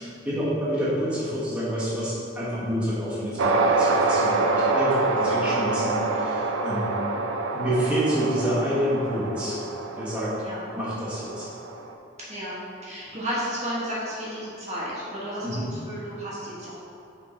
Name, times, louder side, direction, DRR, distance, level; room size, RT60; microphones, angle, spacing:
voice 1, 0.0-6.9 7.5-9.6 10.0-10.3 10.7-11.5 15.4-15.7, equal, 5° right, -11 dB, 1.5 m, -28 dB
sound 1, 3.4-11.9, right 3 dB, 80° right, 0.5 m, -26 dB
voice 2, 12.3-15.6 15.8-16.7, equal, 35° right, -8 dB, 1.4 m, -33 dB
6.5 x 3.7 x 4.4 m, 2.7 s
head